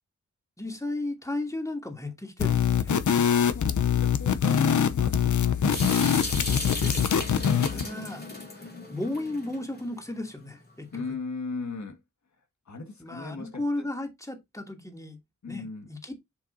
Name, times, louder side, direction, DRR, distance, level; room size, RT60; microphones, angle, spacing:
voice 1, 0.6-2.9 6.8-8.2 8.5-11.0 13.0-15.2 15.5-16.1, left 2 dB, 10° left, 2.5 m, -35 dB
sound 1, 2.4-7.8, left 8 dB, 90° left, 0.8 m, -23 dB
voice 2, 3.2-6.9 7.5-8.1 10.9-12.0 12.7-13.9 15.4-15.9, left 4 dB, 75° left, 1.8 m, -39 dB
Water tap faucet / Sink (filling or washing) / Drip, 5.7-9.8, left 2 dB, 35° left, 3.3 m, -36 dB
7.2 x 6.5 x 2.7 m
wide cardioid pair, 65°, 29 cm